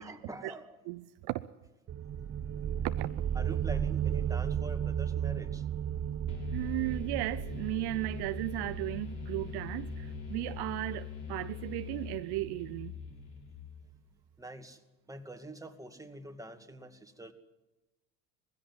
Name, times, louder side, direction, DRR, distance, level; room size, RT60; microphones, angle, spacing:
voice 1, 0.0-0.8 3.4-5.6 14.4-14.8 15.1-17.3, right 1 dB, 5° right, 2.3 m, -45 dB
voice 2, 0.9-1.4 2.8-3.1 6.5-12.9, right 19 dB, 55° right, 0.8 m, -35 dB
sound 1, 1.9-13.3, right 9 dB, 30° right, 0.9 m, -35 dB
sound 2, 6.3-14.0, left 11 dB, 40° left, 5.9 m, -43 dB
20.0 x 16.0 x 9.6 m
hypercardioid pair, 80°, 47 cm